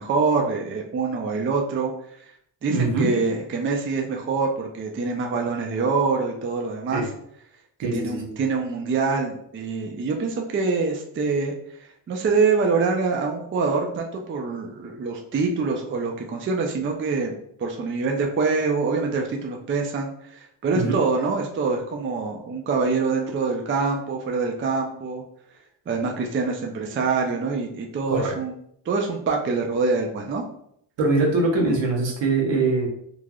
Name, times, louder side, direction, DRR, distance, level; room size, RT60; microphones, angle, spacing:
voice 1, 0.0-1.9 2.6-7.0 7.9-11.8 12.1-25.2 25.9-28.5 28.9-30.4, right 4 dB, 30° right, 2 dB, 0.4 m, -25 dB
voice 2, 2.7-3.1 6.9-7.1 7.8-8.4 20.7-21.0 28.1-28.3 31.0-32.9, right 3 dB, 70° right, 1 dB, 0.9 m, -22 dB
3.1 x 2.4 x 2.2 m, 0.70 s
cardioid pair, 85°, 46 cm